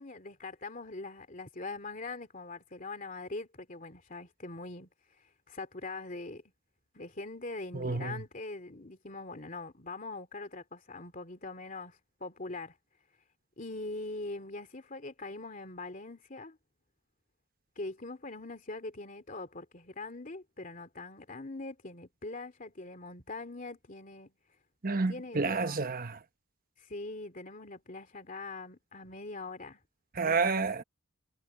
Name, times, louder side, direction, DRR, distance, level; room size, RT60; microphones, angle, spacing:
voice 1, 0.0-4.9 5.2-6.4 6.9-12.8 13.6-16.6 17.8-24.3 25.1-25.8 26.8-29.8 30.2-30.7, left 2 dB, 40° left, 2.8 m, -42 dB
voice 2, 7.7-8.2 24.8-26.2 30.2-30.8, right 4 dB, 45° right, 1.0 m, -30 dB
head